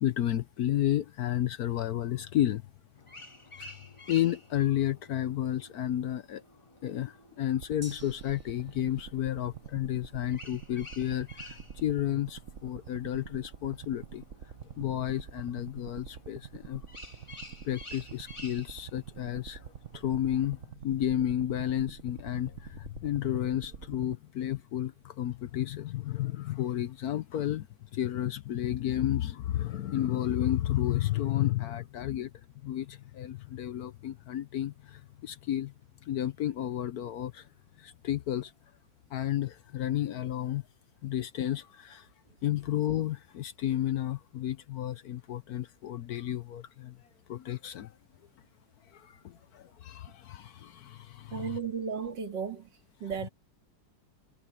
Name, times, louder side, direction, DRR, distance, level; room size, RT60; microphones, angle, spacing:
voice 1, 0.0-2.6 3.6-3.7 4.1-6.4 6.8-14.2 14.8-16.8 17.6-19.6 19.9-27.7 27.9-32.3 32.6-35.7 36.0-37.5 37.8-38.5 39.1-40.6 41.0-42.1 42.4-47.0 47.3-47.9 48.9-51.6, left 12 dB, 65° left, 1.1 m, -32 dB
sound 1, 3.0-20.7, left 1 dB, 15° left, 1.8 m, -52 dB
sound 2, 7.6-24.2, right 8 dB, 50° right, 1.2 m, -47 dB
Gong, 7.8-15.6 15.9-16.0, equal, 10° right, 2.6 m, -58 dB
voice 2, 51.3-52.7 53.0-53.3, right 6 dB, 70° right, 2.8 m, -34 dB
omnidirectional pair, 2.0 m